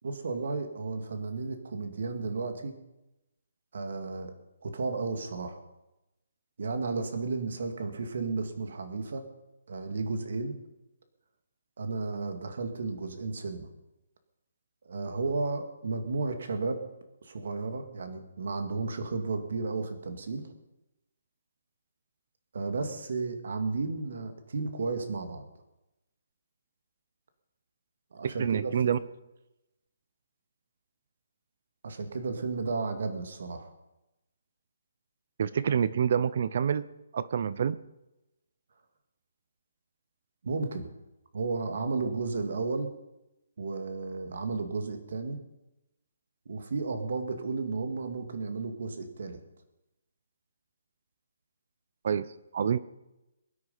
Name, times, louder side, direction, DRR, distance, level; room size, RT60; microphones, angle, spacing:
voice 1, 0.0-2.8 3.7-4.3 4.6-5.6 6.6-9.3 9.7-10.6 11.8-13.7 14.8-16.8 17.2-20.5 22.5-25.4 28.1-29.0 31.8-33.7 40.4-40.9 41.3-42.9 43.6-45.4 46.5-49.4, right 3 dB, 55° right, 7 dB, 2.2 m, -33 dB
voice 2, 28.2-29.0 35.4-36.9 37.1-37.8 52.0-52.3 52.5-52.8, right 7 dB, 40° right, 16 dB, 0.5 m, -27 dB
22.0 x 9.5 x 5.6 m, 0.95 s
hypercardioid pair, 175°, 0 cm